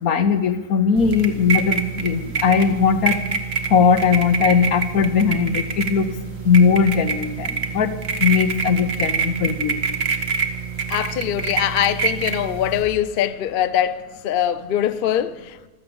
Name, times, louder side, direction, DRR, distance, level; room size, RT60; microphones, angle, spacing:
voice 1, 0.0-3.2 3.7-6.1 6.4-7.9 8.2-9.8, left 6 dB, 85° left, 1.5 m, -19 dB
sound 1, 1.0-12.8, right 5 dB, 45° right, 1.4 m, -26 dB
voice 2, 10.9-15.7, left 11 dB, 50° left, 0.7 m, -22 dB
15.5 x 13.0 x 7.1 m
omnidirectional pair, 1.5 m